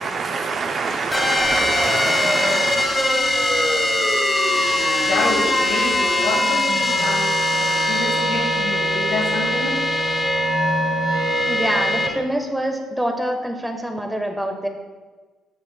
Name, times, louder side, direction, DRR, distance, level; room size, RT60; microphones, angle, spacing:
voice 1, 0.0-3.4, right 4 dB, 50° right, 6 dB, 0.4 m, -26 dB
sound 1, 1.1-12.1, left 1 dB, 20° left, 1.1 m, -21 dB
voice 2, 5.0-9.8, left 2 dB, 70° left, -2 dB, 1.3 m, -27 dB
voice 3, 11.5-14.7, equal, 5° right, 4 dB, 1.1 m, -25 dB
7.3 x 6.7 x 2.2 m, 1.4 s
supercardioid pair, 60°, 0 cm